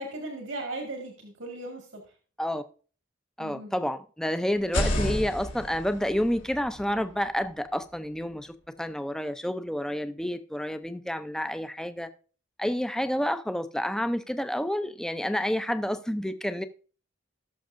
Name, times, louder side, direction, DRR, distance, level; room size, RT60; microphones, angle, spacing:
voice 1, 0.0-2.0 3.4-3.7, right 2 dB, 80° right, 2.0 m, -37 dB
voice 2, 3.4-12.1 12.6-16.6, equal, 5° left, 0.5 m, -29 dB
sound 1, 4.6-8.4, left 1 dB, 80° left, 2.9 m, -33 dB
19.0 x 6.4 x 2.6 m
head